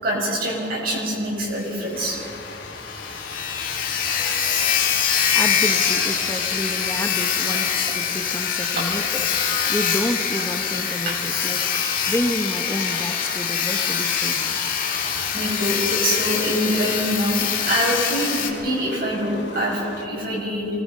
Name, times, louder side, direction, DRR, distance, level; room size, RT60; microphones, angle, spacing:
voice 1, 0.0-2.2 11.0-11.2 15.3-20.7, equal, 55° right, -3 dB, 6.6 m, -24 dB
Sawing, 1.6-1.7 2.0-2.1 2.5-2.6 2.8-18.5, left 7 dB, 50° left, 2.3 m, -24 dB
sound 1, 1.9-20.1, left 3 dB, 80° left, 3.0 m, -40 dB
voice 2, 5.3-14.6, left 1 dB, 15° left, 7 dB, 1.0 m, -30 dB
24.5 x 20.0 x 5.6 m, 2.8 s
head